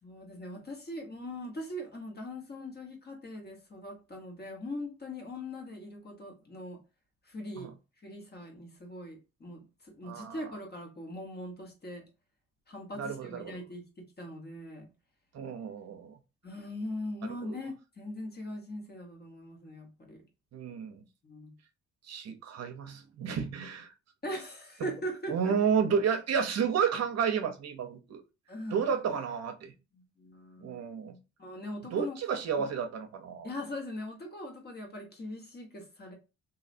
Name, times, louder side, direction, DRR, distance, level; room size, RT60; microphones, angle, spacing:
voice 1, 0.0-6.8 7.2-7.7 8.0-12.1 12.7-14.9 16.4-20.2 21.2-21.5 24.2-25.5 28.5-28.9 29.9-30.8 31.4-32.2 32.6-32.7 33.4-36.1, left 1 dB, 35° left, 1.4 m, -41 dB
voice 2, 10.0-10.4 13.0-13.6 15.3-16.2 17.4-17.6 20.5-21.0 22.1-23.9 24.8-24.9 25.3-28.2 28.7-29.7 30.6-31.2 31.9-33.5, right 7 dB, 60° right, 0.7 m, -31 dB
3.1 x 2.7 x 2.6 m
cardioid pair, 90°, 30 cm